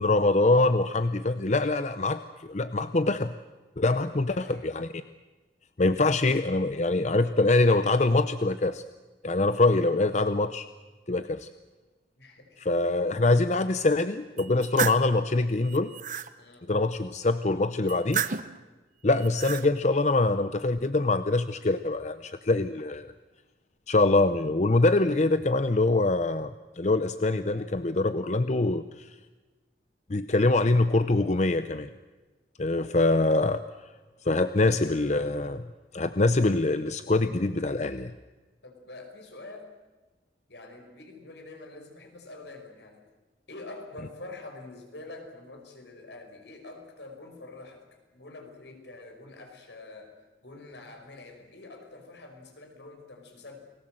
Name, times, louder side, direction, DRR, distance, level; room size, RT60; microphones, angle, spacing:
voice 1, 0.0-3.3 3.8-4.9 5.8-8.8 9.2-10.7 11.1-11.5 12.6-15.9 16.7-18.3 19.0-23.1 23.9-29.1 30.1-31.9 32.6-33.6 34.2-35.7 35.9-38.1, left 2 dB, 40° left, 11 dB, 0.7 m, -24 dB
voice 2, 4.1-4.7 12.2-12.6 16.4-16.7 38.6-39.7 40.5-43.0 43.5-47.9 48.1-50.1 50.4-53.6, left 2 dB, 75° left, 4 dB, 5.5 m, -46 dB
sound 1, 14.4-15.1 15.6-16.3 17.9-18.6 19.2-19.7, right 7 dB, 45° right, 1.0 m, -32 dB
30.0 x 20.5 x 7.8 m, 1.2 s
head